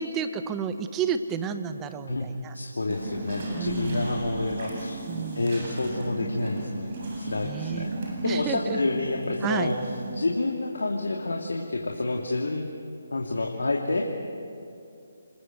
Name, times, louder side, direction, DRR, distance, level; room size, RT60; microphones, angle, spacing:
voice 1, 0.0-2.5 3.5-4.3 5.1-5.8 7.4-7.9 8.2-8.8 9.4-9.7, right 7 dB, 15° right, 10 dB, 1.1 m, -31 dB
voice 2, 2.5-5.0 5.3-6.9 7.2-7.9 8.2-9.8 10.1-12.6 13.1-14.1, left 2 dB, 80° left, 0 dB, 2.6 m, -28 dB
sound 1, 2.9-10.2, right 2 dB, 45° right, 7.8 m, -35 dB
27.5 x 21.5 x 8.0 m, 2.6 s
figure-of-eight pair, 150°, 0 cm